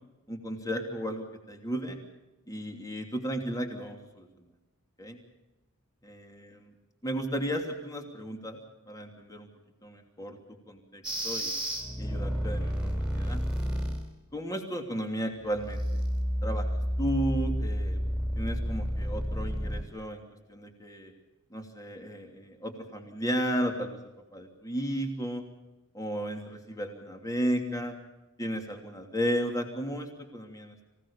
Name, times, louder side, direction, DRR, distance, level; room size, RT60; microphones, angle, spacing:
voice 1, 0.3-2.0 2.5-4.3 5.0-5.2 6.0-6.7 7.0-8.6 8.9-9.5 9.8-10.4 10.7-11.5 12.0-13.4 14.3-15.8 16.4-16.7 17.0-18.0 18.3-20.2 20.5-21.1 21.5-24.0 24.3-25.4 25.9-27.9 28.4-30.8, equal, 15° left, 3 dB, 2.9 m, -34 dB
sound 1, 11.0-14.1 15.5-19.8, equal, 5° right, 3.8 m, -30 dB
25.5 x 17.0 x 7.1 m, 1.0 s
head